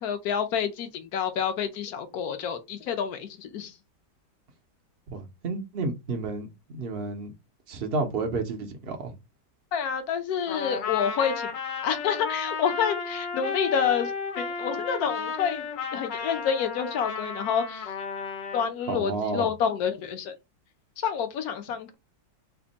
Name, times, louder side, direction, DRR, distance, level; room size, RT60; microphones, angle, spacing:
voice 1, 0.0-3.7 9.7-11.5 11.8-14.1 14.4-15.7 15.9-17.9 18.5-20.3 21.0-21.9, left 7 dB, 65° left, 1.1 m, -28 dB
voice 2, 5.1-7.3 7.7-9.1 18.9-19.5, right 3 dB, 60° right, 0.6 m, -31 dB
Trumpet, 10.5-18.7, left 5 dB, 90° left, 1.5 m, -33 dB
3.4 x 2.1 x 3.9 m
omnidirectional pair, 1.9 m